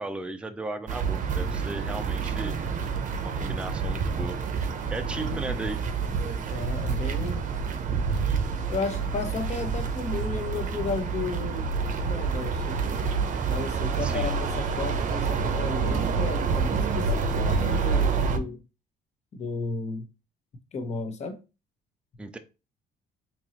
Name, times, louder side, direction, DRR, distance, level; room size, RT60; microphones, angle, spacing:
voice 1, 0.0-2.6 3.2-4.4 4.9-5.8 14.0-14.3 22.2-22.4, right 2 dB, 5° right, 0.5 m, -35 dB
sound 1, 0.9-18.4, right 5 dB, 50° right, 0.7 m, -28 dB
voice 2, 5.2-5.6 6.5-7.5 8.7-13.0 13.5-18.6 19.3-20.1 20.7-21.4, left 3 dB, 40° left, 1.0 m, -34 dB
4.4 x 3.0 x 2.9 m
cardioid pair, 110°, 17 cm